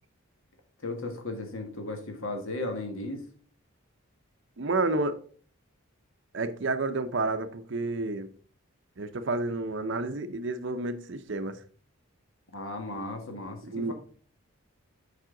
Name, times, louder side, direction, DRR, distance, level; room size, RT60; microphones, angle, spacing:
voice 1, 0.8-3.2 12.5-13.9, left 2 dB, 70° left, 4 dB, 1.6 m, -35 dB
voice 2, 4.6-5.2 6.3-8.3 9.0-11.5 13.6-13.9, right 2 dB, 55° right, 10 dB, 0.6 m, -30 dB
7.5 x 5.5 x 3.8 m, 0.43 s
head